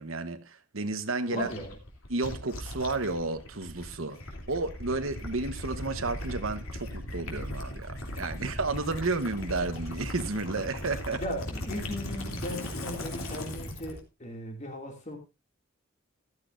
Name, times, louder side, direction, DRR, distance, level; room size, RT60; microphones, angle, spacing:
voice 1, 0.0-1.5 2.1-4.2 4.5-11.2, right 3 dB, 80° right, 1.2 m, -32 dB
voice 2, 1.3-1.8 8.3-8.5 11.2-15.2, equal, 35° left, 2.6 m, -37 dB
Gurgling / Liquid, 1.4-14.0, left 1 dB, 90° left, 3.1 m, -38 dB
15.0 x 12.5 x 2.6 m
head